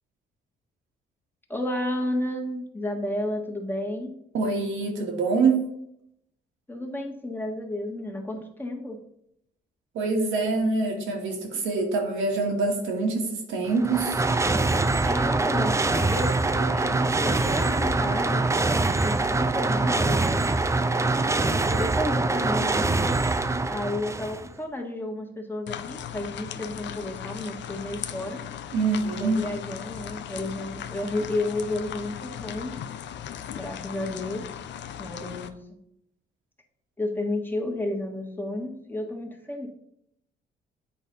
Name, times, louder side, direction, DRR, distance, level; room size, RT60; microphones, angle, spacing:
voice 1, 1.5-4.2 6.7-9.0 15.0-18.5 18.8-20.5 21.4-23.3 23.7-28.4 29.2-32.8 33.5-34.5 35.0-35.5 37.0-39.7, left 1 dB, 10° left, 1 dB, 1.6 m, -32 dB
voice 2, 4.3-5.6 9.9-14.2 28.7-29.5, right 3 dB, 85° right, 1 dB, 1.9 m, -25 dB
sound 1, 13.7-24.5, right 3 dB, 15° right, 0.5 m, -24 dB
sound 2, 25.7-35.5, left 9 dB, 65° left, 0.6 m, -38 dB
8.5 x 4.1 x 5.3 m, 0.77 s
cardioid pair, 90°, 20 cm